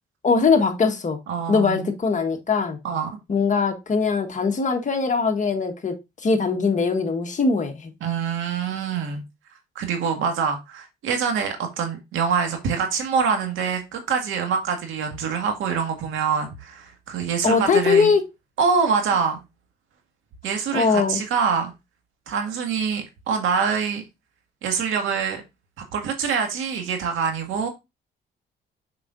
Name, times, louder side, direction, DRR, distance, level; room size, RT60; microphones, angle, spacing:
voice 1, 0.2-1.2 1.5-2.8 3.3-6.0 6.2-7.9 17.4-18.2 20.7-21.2, left 5 dB, 40° left, 1.4 m, -21 dB
voice 2, 1.3-1.9 2.8-3.1 8.0-9.2 9.8-18.1 18.6-19.4 20.4-21.7 22.3-24.0 24.6-25.4 25.9-27.7, right 6 dB, 85° right, 1.9 m, -25 dB
6.7 x 5.6 x 2.6 m
cardioid pair, 90°, 20 cm